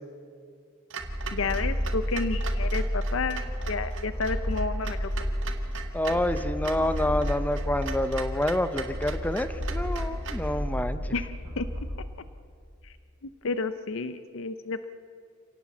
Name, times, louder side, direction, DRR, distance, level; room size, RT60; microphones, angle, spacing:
Clock, 0.9-10.5, right 6 dB, 65° right, 2.0 m, -41 dB
sound 1, 1.0-12.0, equal, 15° right, 5.7 m, -31 dB
voice 1, 1.3-5.1 11.1-11.3 11.6-11.7 12.8-12.9 13.2-14.9, left 4 dB, 65° left, 11 dB, 0.7 m, -31 dB
voice 2, 5.9-11.2, left 1 dB, 10° left, 11 dB, 0.8 m, -28 dB
27.0 x 18.5 x 7.4 m, 2.4 s
head